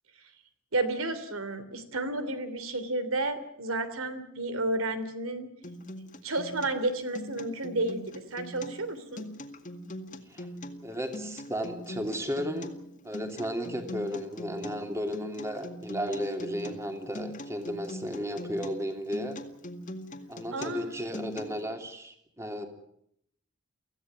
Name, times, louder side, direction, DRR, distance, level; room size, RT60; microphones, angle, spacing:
voice 1, 0.7-5.5 6.2-9.2 20.5-20.9, right 2 dB, 75° right, 11 dB, 3.1 m, -31 dB
Acoustic guitar, 5.6-21.6, left 1 dB, 35° left, 2.0 m, -42 dB
voice 2, 10.8-12.7 13.0-19.4 20.3-22.7, equal, 15° right, 5 dB, 3.0 m, -34 dB
24.5 x 16.0 x 9.6 m, 0.74 s
head